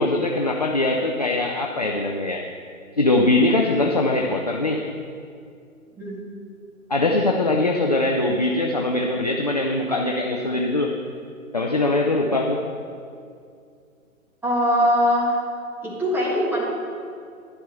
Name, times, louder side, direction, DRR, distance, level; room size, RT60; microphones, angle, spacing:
voice 1, 0.0-2.5 3.0-4.9 6.9-10.9 11.5-12.6, left 2 dB, 30° left, 1 dB, 0.4 m, -22 dB
voice 2, 14.4-15.4 15.8-16.6, equal, 5° right, -6 dB, 1.6 m, -21 dB
11.0 x 10.0 x 3.6 m, 2.4 s
figure-of-eight pair, 130°, 42 cm